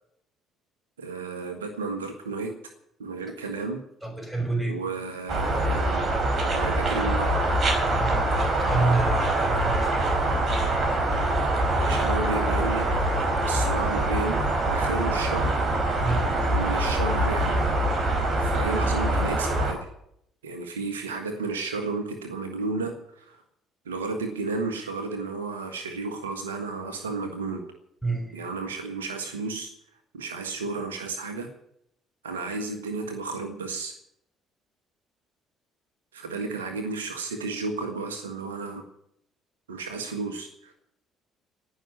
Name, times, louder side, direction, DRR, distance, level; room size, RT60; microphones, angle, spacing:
voice 1, 1.0-2.5 3.0-3.8 4.6-6.0 6.4-7.4 11.8-12.8 13.5-14.4 14.6-15.5 16.5-17.7 18.4-19.9 20.4-23.4 23.8-27.6 28.3-29.7 30.1-31.5 32.2-33.9 36.1-38.8 39.7-40.7, right 3 dB, 85° right, 5 dB, 1.6 m, -32 dB
voice 2, 4.0-4.8 8.0-10.2 16.0-16.3 28.0-28.4, right 3 dB, 5° right, 4 dB, 5.9 m, -29 dB
sound 1, 5.3-19.7, right 1 dB, 40° right, 4.7 m, -24 dB
19.0 x 6.4 x 9.8 m, 0.75 s
hypercardioid pair, 50°, 0 cm